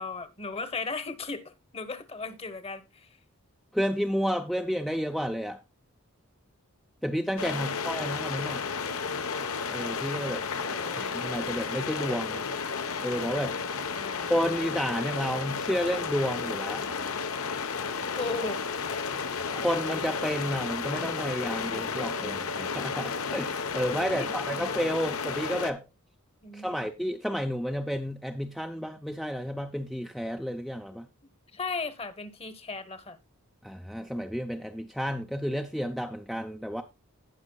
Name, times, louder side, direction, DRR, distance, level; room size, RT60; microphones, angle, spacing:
voice 1, 0.0-1.4 1.7-3.1 10.6-11.1 13.9-14.3 18.1-18.6 24.1-24.3 26.4-26.9 31.5-33.2, left 4 dB, 25° left, 1.0 m, -36 dB
voice 2, 3.7-5.6 7.0-8.6 9.7-10.4 10.9-12.4 13.0-13.6 14.3-16.9 19.5-25.9 26.5-31.1 33.6-36.8, equal, ahead, 0.5 m, -31 dB
sound 1, 7.4-25.7, left 5 dB, 80° left, 1.0 m, -32 dB
18.0 x 6.3 x 2.2 m
head